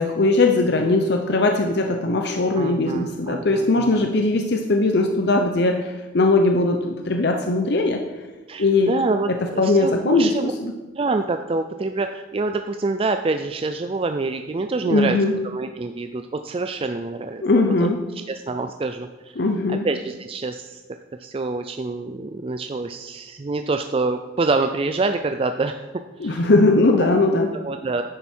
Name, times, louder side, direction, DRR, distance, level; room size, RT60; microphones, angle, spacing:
voice 1, 0.0-8.0 8.6-8.9 9.3-10.7 14.9-15.3 17.4-18.0 19.4-19.9 26.2-27.5, left 2 dB, 60° left, 4 dB, 0.7 m, -20 dB
voice 2, 2.6-4.1 8.5-10.5 11.0-15.2 15.4-17.4 17.8-17.9 18.3-19.4 19.7-20.8 21.2-25.8 26.2-26.4 27.1-27.3 27.5-28.0, right 3 dB, 30° right, 7 dB, 0.4 m, -26 dB
10.5 x 9.1 x 4.5 m, 1.2 s
head